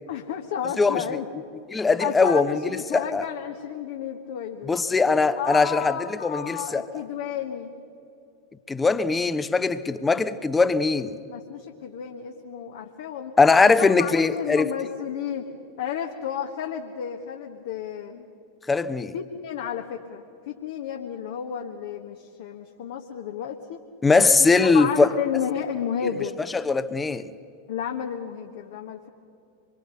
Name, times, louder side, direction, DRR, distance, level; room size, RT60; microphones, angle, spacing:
voice 1, 0.1-1.4 2.0-4.8 5.4-7.7 11.3-13.4 13.8-15.5 15.8-18.3 19.1-23.8 24.2-26.4 27.7-29.1, left 8 dB, 55° left, 1.3 m, -32 dB
voice 2, 1.7-2.6 2.9-3.2 4.7-6.8 8.7-11.2 13.4-14.7 18.7-19.1 24.0-25.1 26.5-27.2, left 4 dB, 15° left, 0.9 m, -21 dB
26.0 x 23.0 x 6.8 m
figure-of-eight pair, 90°, 0 cm